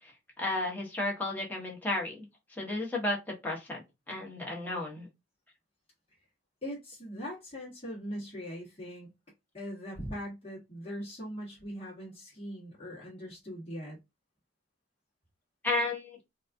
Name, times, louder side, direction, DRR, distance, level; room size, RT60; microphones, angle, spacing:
voice 1, 0.0-2.1 2.6-3.2 3.4-3.8 4.1-5.1 15.6-16.2, left 2 dB, 10° left, -3 dB, 1.1 m, -33 dB
voice 2, 6.6-9.1 9.5-14.0, equal, 30° left, -6 dB, 1.2 m, -41 dB
4.0 x 2.4 x 2.5 m, 0.22 s
head